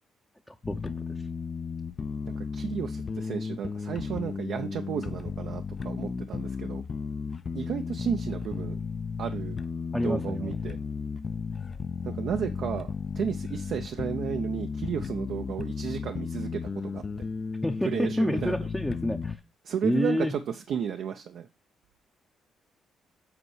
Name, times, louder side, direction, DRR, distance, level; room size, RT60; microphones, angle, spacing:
voice 1, 0.5-0.8 1.1-1.2 9.9-10.5 17.6-19.4 19.8-20.3, left 1 dB, 5° left, 3 dB, 0.7 m, -29 dB
sound 1, 0.6-19.4, left 5 dB, 40° left, 0.6 m, -34 dB
voice 2, 2.3-6.8 7.5-8.8 9.2-9.6 10.0-10.8 12.0-17.0 17.8-18.7 19.6-21.5, right 8 dB, 70° right, 6 dB, 0.7 m, -33 dB
8.1 x 4.3 x 4.8 m, 0.28 s
cardioid pair, 90°, 0 cm